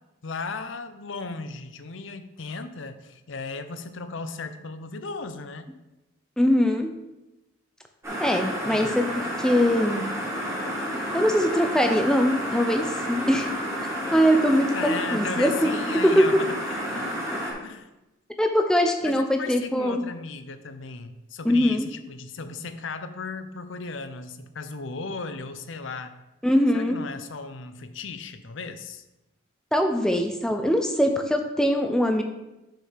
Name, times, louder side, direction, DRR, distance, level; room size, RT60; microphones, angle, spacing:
voice 1, 0.2-5.7 8.6-9.0 14.7-17.2 17.6-17.9 19.0-26.2 26.7-29.0, left 4 dB, 70° left, 10 dB, 0.6 m, -36 dB
voice 2, 6.4-6.9 8.2-8.9 9.4-10.1 11.1-13.5 14.1-15.7 16.0-16.2 18.4-20.0 21.4-21.9 26.4-27.0 29.7-32.2, equal, 5° left, 4 dB, 0.6 m, -22 dB
sound 1, 8.0-17.5, equal, 15° right, 2.0 m, -30 dB
6.6 x 4.8 x 5.8 m, 0.98 s
head